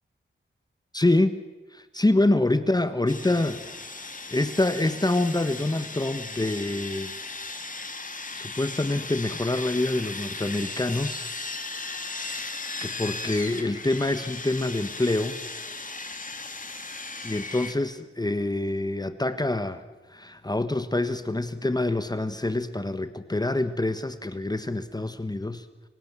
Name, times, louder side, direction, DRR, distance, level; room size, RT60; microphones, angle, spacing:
voice 1, 0.9-1.4 1.7-3.6 4.0-7.1 8.3-11.3 12.2-12.4 12.8-15.4 17.2-19.8 20.1-25.7, left 2 dB, 20° left, 11 dB, 1.3 m, -26 dB
Sawing, 3.1-17.7, left 3 dB, 40° left, 2.8 m, -37 dB
30.0 x 24.0 x 7.4 m, 1.2 s
wide cardioid pair, 110°, 21 cm